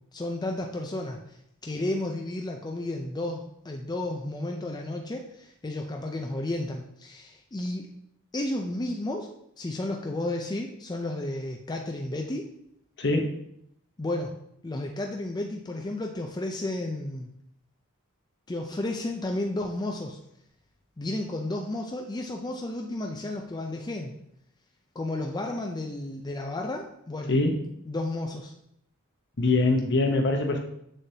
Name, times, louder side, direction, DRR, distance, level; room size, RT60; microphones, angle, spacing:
voice 1, 0.1-1.2 1.6-7.9 8.3-12.5 14.0-14.4 14.6-17.3 18.5-20.2 21.0-24.1 25.0-27.3 27.8-28.5, left 1 dB, 20° left, 2 dB, 0.5 m, -32 dB
voice 2, 13.0-13.4 27.3-27.6 29.4-30.6, left 2 dB, 55° left, 4 dB, 1.0 m, -23 dB
7.6 x 6.5 x 2.8 m, 0.74 s
head